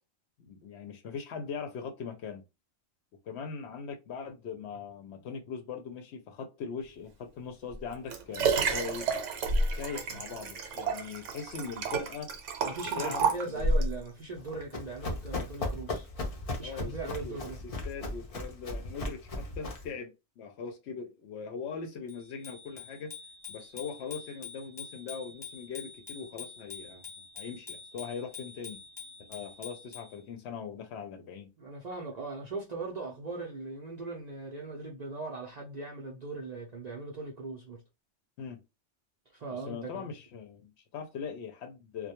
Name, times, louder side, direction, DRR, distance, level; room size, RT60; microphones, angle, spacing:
voice 1, 0.4-2.4 3.3-9.1 9.7-12.3 13.0-13.6 16.6-23.1 23.5-27.1 27.4-28.8 29.3-31.5 38.4-38.6 39.5-42.1, left 6 dB, 65° left, 0.8 m, -40 dB
Liquid, 7.7-14.0 14.6-14.7, right 3 dB, 75° right, 0.9 m, -30 dB
voice 2, 12.6-16.1 16.6-17.6 31.6-37.8 39.3-40.1, right 3 dB, 55° right, 0.5 m, -39 dB
Run, 14.4-19.9, left 2 dB, 50° left, 0.4 m, -37 dB
Bicycle bell, 22.1-30.2, left 5 dB, 30° left, 0.8 m, -46 dB
2.2 x 2.1 x 2.8 m
omnidirectional pair, 1.3 m